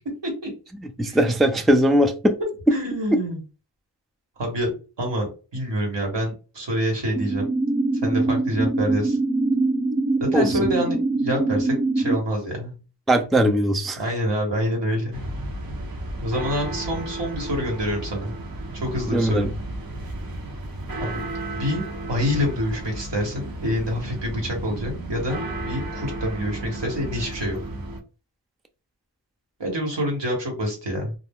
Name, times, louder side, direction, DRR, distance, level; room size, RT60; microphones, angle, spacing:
voice 1, 1.0-2.4 2.7-2.8 3.1-3.2 10.3-10.7 13.1-14.0 19.1-19.5, equal, ahead, 0.3 m, -19 dB
voice 2, 2.7-3.4 4.4-4.7 5.0-7.4 8.0-9.2 10.3-12.7 14.0-15.1 16.2-18.3 18.7-19.5 21.0-21.2 21.5-21.8 22.1-27.6 29.6-31.1, equal, 80° right, 1.3 m, -27 dB
sound 1, 7.1-12.2, right 2 dB, 20° right, 0.7 m, -23 dB
sound 2, 15.1-28.0, right 1 dB, 55° right, 0.7 m, -33 dB
2.3 x 2.2 x 3.5 m
wide cardioid pair, 50°, 42 cm